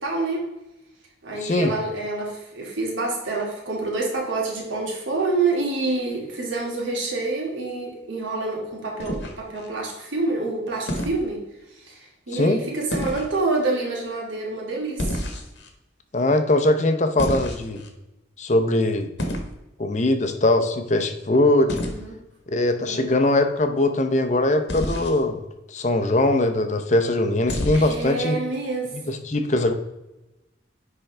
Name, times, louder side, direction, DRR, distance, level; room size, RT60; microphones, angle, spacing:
voice 1, 0.0-0.5 1.2-11.4 11.8-15.2 21.9-22.2 22.8-23.1 27.7-29.0, right 3 dB, 90° right, -2 dB, 2.3 m, -27 dB
voice 2, 1.4-1.7 12.3-12.6 16.1-17.8 18.4-19.1 19.8-21.8 22.5-25.4 25.7-28.4 28.9-29.7, left 2 dB, 40° left, 7 dB, 0.6 m, -21 dB
sound 1, 9.0-9.7 10.9-11.2 12.9-13.3 15.0-15.7 17.2-17.9 19.2-19.5 21.7-22.0 24.7-25.2 27.5-28.1, equal, 70° left, 1.2 m, -29 dB
10.0 x 3.8 x 3.3 m, 0.97 s
head